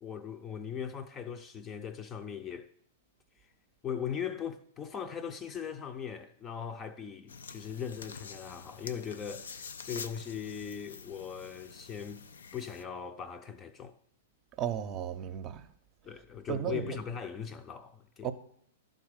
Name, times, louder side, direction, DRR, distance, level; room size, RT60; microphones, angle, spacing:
voice 1, 0.0-2.7 3.8-12.3 12.5-14.0 16.0-18.3, left 8 dB, 25° left, 0.6 m, -39 dB
sound 1, 7.3-12.8, left 5 dB, 80° left, 0.5 m, -47 dB
voice 2, 14.6-15.7 16.5-17.0 18.2-18.3, right 9 dB, 35° right, 0.7 m, -34 dB
11.5 x 3.9 x 6.5 m
hypercardioid pair, 115°, 0 cm